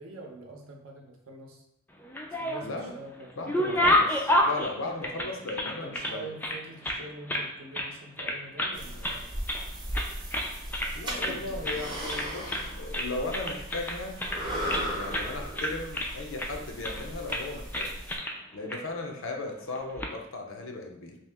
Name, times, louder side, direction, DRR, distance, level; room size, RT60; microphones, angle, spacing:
voice 1, 0.0-1.6 2.4-4.0 5.1-5.4 5.8-9.3 11.0-12.0, right 2 dB, 65° right, 1 dB, 0.7 m, -45 dB
sound 1, 2.0-2.8 3.2-6.1 6.4-7.5 7.7-7.9 8.2-8.8 9.0-9.7 9.9-10.9 11.2-11.4 11.6-11.8 12.1-12.7 12.9-14.8 15.1-15.3 15.6-16.5 16.8-17.0 17.3-17.5 17.7-18.4 18.7-18.8 19.8-20.1, left 1 dB, 10° left, 0.3 m, -29 dB
voice 2, 2.6-2.9 3.4-6.3 10.9-14.2 14.9-18.0 18.5-21.2, left 2 dB, 65° left, 3 dB, 0.6 m, -37 dB
sound 2, 8.7-18.2, equal, 20° right, 0.7 m, -37 dB
2.9 x 2.8 x 3.4 m, 0.82 s
head